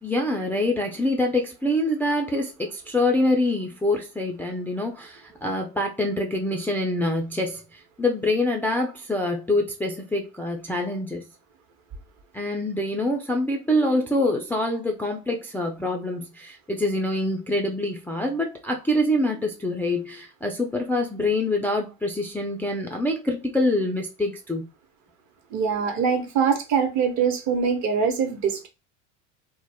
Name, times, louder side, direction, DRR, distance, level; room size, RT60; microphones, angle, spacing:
voice 1, 0.0-11.2 12.3-24.7, left 1 dB, 5° left, 0.3 m, -25 dB
voice 2, 25.5-28.7, right 6 dB, 45° right, 1.0 m, -23 dB
2.3 x 2.1 x 3.4 m
hypercardioid pair, 85°, 38 cm